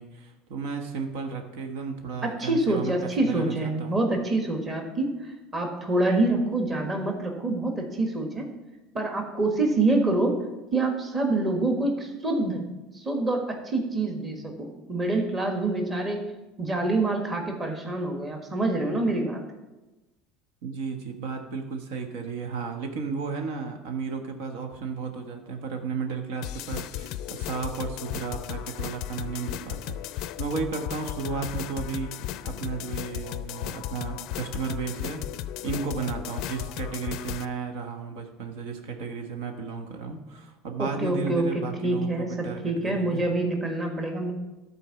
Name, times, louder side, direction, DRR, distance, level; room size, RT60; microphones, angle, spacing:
voice 1, 0.0-4.0 20.6-35.2 35.6-43.2, right 5 dB, 80° right, 4 dB, 1.3 m, -34 dB
voice 2, 2.2-8.5 8.9-10.3 10.7-12.6 12.9-16.2 16.6-19.4 40.8-44.3, right 2 dB, 20° right, 3 dB, 1.4 m, -26 dB
sound 1, 26.4-37.5, left 12 dB, 55° left, 0.4 m, -35 dB
12.5 x 4.5 x 7.0 m, 1.1 s
cardioid pair, 155°, 0 cm